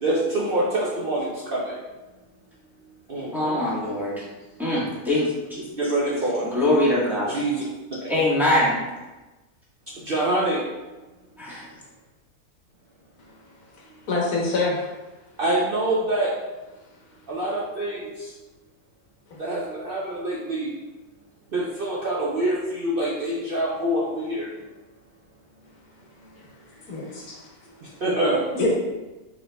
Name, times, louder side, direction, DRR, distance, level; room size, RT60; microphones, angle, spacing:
voice 1, 0.0-1.7 3.1-3.6 5.8-6.5 7.3-7.6 10.1-10.6 15.4-16.3 17.3-18.0 19.4-20.7 21.5-24.5 28.0-28.4, right 1 dB, 55° right, -5 dB, 0.7 m, -25 dB
voice 2, 3.3-4.2 4.6-5.7 6.5-7.4 8.1-8.8 11.4-11.6, left 1 dB, ahead, -8 dB, 1.1 m, -23 dB
voice 3, 13.8-14.9 19.3-19.4 26.8-27.5 28.5-28.8, left 2 dB, 85° left, -3 dB, 1.5 m, -26 dB
4.6 x 4.6 x 2.2 m, 1.1 s
omnidirectional pair, 1.5 m